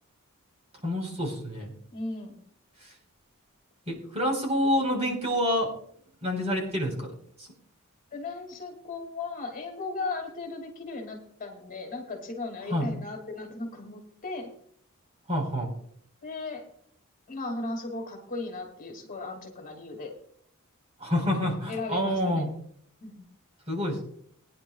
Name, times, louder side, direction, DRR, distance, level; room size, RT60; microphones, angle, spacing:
voice 1, 0.8-1.7 2.8-2.9 3.9-5.7 6.2-7.1 7.4-7.5 12.7-12.9 15.3-15.7 21.0-22.5 23.7-24.0, equal, 30° right, 0 dB, 4.4 m, -27 dB
voice 2, 1.9-2.4 8.1-14.5 16.2-16.6 17.3-20.2 21.7-22.5 23.0-23.2, left 3 dB, 40° left, 1 dB, 2.4 m, -36 dB
21.5 x 10.5 x 2.4 m, 0.64 s
head